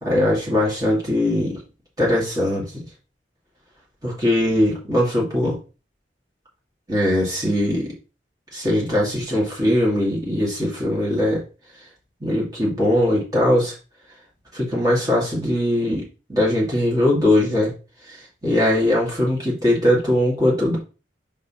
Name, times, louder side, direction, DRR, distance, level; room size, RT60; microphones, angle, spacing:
voice 1, 0.0-1.6 2.0-2.6 4.0-5.6 6.9-7.9 8.5-11.4 12.2-13.7 14.5-17.7 18.1-20.8, left 1 dB, 20° right, -4 dB, 2.5 m, -20 dB
5.5 x 4.3 x 5.6 m, 0.34 s
head